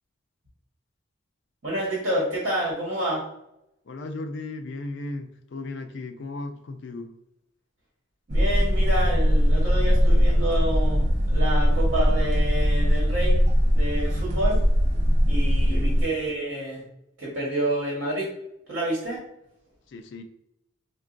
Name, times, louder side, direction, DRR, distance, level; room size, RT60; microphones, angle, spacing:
voice 1, 1.6-3.3 8.3-13.5 13.7-14.6 15.3-16.8 17.2-18.3 18.7-19.2, right 1 dB, 55° right, 1.3 m, -28 dB
voice 2, 3.9-7.1 15.7-15.9 19.9-20.2, left 2 dB, 60° left, 0.4 m, -36 dB
sound 1, 8.3-16.0, equal, 35° right, 0.4 m, -21 dB
4.4 x 2.3 x 2.5 m
head